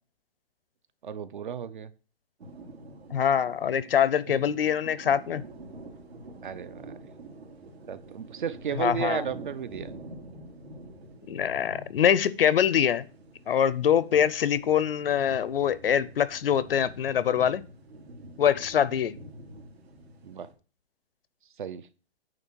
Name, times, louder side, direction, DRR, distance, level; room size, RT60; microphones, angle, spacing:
voice 1, 1.0-1.9 6.4-6.9 7.9-9.9 20.2-20.5 21.6-21.9, right 8 dB, 50° right, 0.6 m, -34 dB
sound 1, 2.4-20.5, right 2 dB, 80° right, 2.5 m, -46 dB
voice 2, 3.1-5.4 8.8-9.2 11.3-13.1 13.5-17.6 18.4-19.2, left 8 dB, 65° left, 0.6 m, -24 dB
9.0 x 3.3 x 6.0 m
hypercardioid pair, 165°, 32 cm